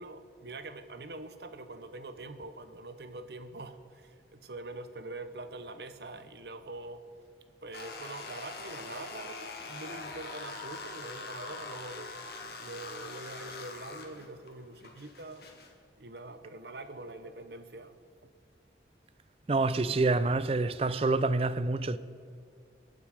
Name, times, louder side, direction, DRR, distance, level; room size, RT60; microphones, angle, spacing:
voice 1, 0.0-7.0 7.6-12.1 12.6-15.4 16.0-18.0, right 2 dB, 70° right, 0.9 m, -44 dB
sound 1, 7.7-15.7, left 3 dB, 65° left, 1.7 m, -43 dB
voice 2, 19.5-22.0, right 3 dB, 35° right, 0.4 m, -27 dB
23.0 x 9.0 x 4.9 m
head